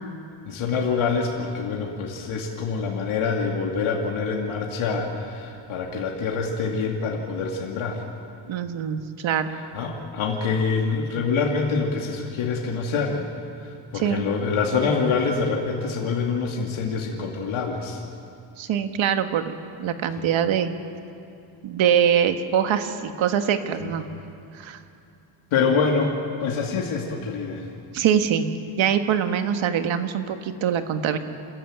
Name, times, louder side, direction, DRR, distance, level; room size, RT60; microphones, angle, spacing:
voice 1, 0.5-8.0 9.7-13.3 13.6-18.0 20.2-20.3 23.8-23.9 25.5-27.6, left 5 dB, 80° left, -1 dB, 2.5 m, -26 dB
voice 2, 8.5-9.5 13.9-14.3 18.6-20.7 21.6-24.0 24.5-24.8 27.9-28.5 28.8-31.2, right 8 dB, 75° right, 7 dB, 1.6 m, -23 dB
28.5 x 14.5 x 9.0 m, 2.6 s
cardioid pair, 145°, 47 cm